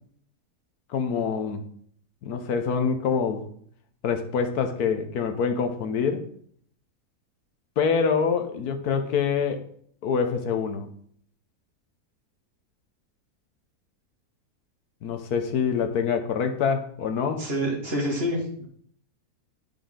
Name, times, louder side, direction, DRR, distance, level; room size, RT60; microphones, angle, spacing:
voice 1, 0.9-1.6 2.2-3.4 4.0-6.2 7.8-9.6 10.0-10.9 15.0-17.5, left 6 dB, 75° left, 7 dB, 1.3 m, -25 dB
voice 2, 17.4-18.7, equal, 40° right, -1 dB, 2.0 m, -27 dB
10.5 x 5.3 x 3.7 m, 0.62 s
omnidirectional pair, 1.7 m